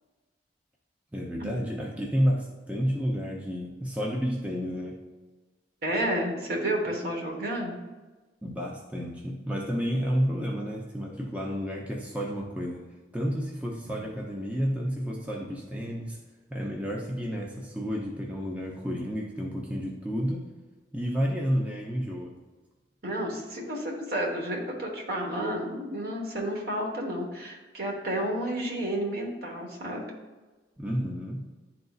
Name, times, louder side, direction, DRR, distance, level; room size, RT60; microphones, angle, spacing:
voice 1, 1.1-5.0 8.4-12.9 13.1-16.2 16.5-20.5 20.9-22.3 30.8-31.4, equal, 10° right, -1 dB, 0.5 m, -30 dB
voice 2, 5.8-7.8 23.0-30.0, right 1 dB, 55° right, 0 dB, 1.2 m, -31 dB
10.5 x 3.9 x 2.4 m, 1.2 s
head